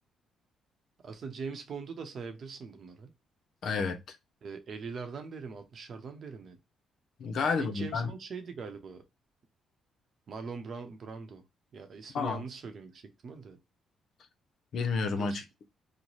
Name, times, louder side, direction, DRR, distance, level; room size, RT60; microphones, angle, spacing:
voice 1, 1.0-3.1 4.4-6.6 7.6-9.0 10.3-11.4 11.7-13.6 15.2-15.4, right 5 dB, 55° right, 0.8 m, -42 dB
voice 2, 3.6-4.2 7.2-8.1 12.1-12.4 14.7-15.4, left 4 dB, 65° left, 0.6 m, -30 dB
3.1 x 2.1 x 4.0 m
cardioid pair, 90°, 0 cm